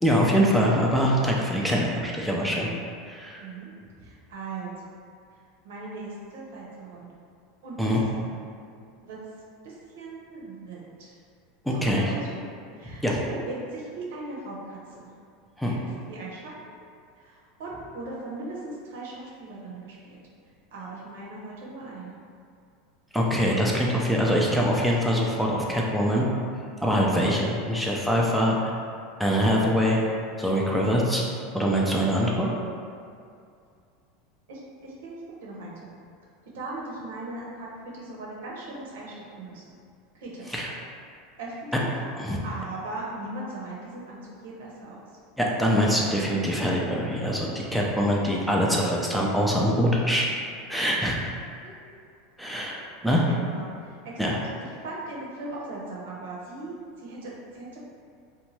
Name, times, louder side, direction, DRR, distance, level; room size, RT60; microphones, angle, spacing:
voice 1, 0.0-2.7 3.1-3.4 7.8-8.0 11.7-12.1 12.8-13.2 15.6-15.8 23.1-26.3 26.8-28.5 29.2-30.0 30.4-31.2 31.5-32.5 40.5-40.7 42.2-42.4 45.4-50.3 50.7-51.2 52.4-53.2 54.2-54.4, equal, ahead, -3 dB, 0.4 m, -24 dB
voice 2, 3.4-3.7 4.0-4.9 5.6-7.1 7.6-8.4 9.0-9.2 9.6-11.2 11.7-12.3 12.8-15.1 15.6-16.5 17.2-20.2 20.7-22.2 34.5-35.2 35.4-35.8 36.5-39.6 40.1-40.6 41.4-41.9 42.4-45.0 51.6-51.7 53.3-53.7 54.0-54.3 54.8-57.8, right 2 dB, 85° right, -4 dB, 0.7 m, -38 dB
2.7 x 2.2 x 3.1 m, 2.4 s
supercardioid pair, 115°, 0 cm